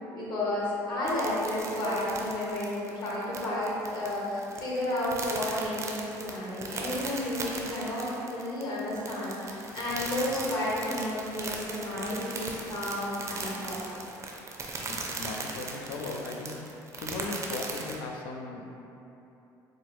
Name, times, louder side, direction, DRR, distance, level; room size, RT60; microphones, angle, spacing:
voice 1, 0.1-13.9, left 1 dB, 55° left, -7 dB, 1.2 m, -32 dB
sound 1, 1.1-18.0, right 3 dB, 35° right, 0.5 m, -38 dB
voice 2, 14.9-18.8, left 3 dB, 85° left, 1 dB, 0.4 m, -38 dB
4.4 x 2.0 x 3.1 m, 2.9 s
cardioid pair, 100°, 9 cm